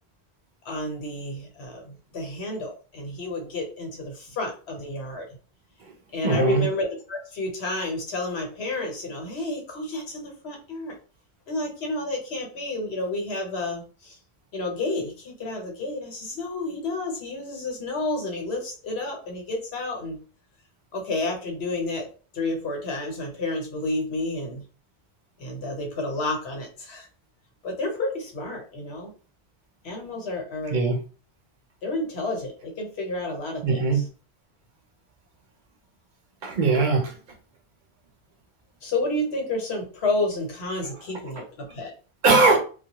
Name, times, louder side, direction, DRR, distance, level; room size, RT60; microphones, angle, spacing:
voice 1, 0.6-5.3 6.1-11.0 11.5-14.2 14.5-20.2 20.9-22.1 22.3-24.6 25.4-27.1 27.6-29.1 29.8-30.8 31.8-34.0 38.8-41.9, left 2 dB, 75° left, 1 dB, 1.1 m, -30 dB
voice 2, 6.2-6.6 30.7-31.0 33.6-34.0 36.4-37.2 42.2-42.6, right 3 dB, 55° right, 2 dB, 0.7 m, -20 dB
2.2 x 2.1 x 2.8 m, 0.37 s
omnidirectional pair, 1.1 m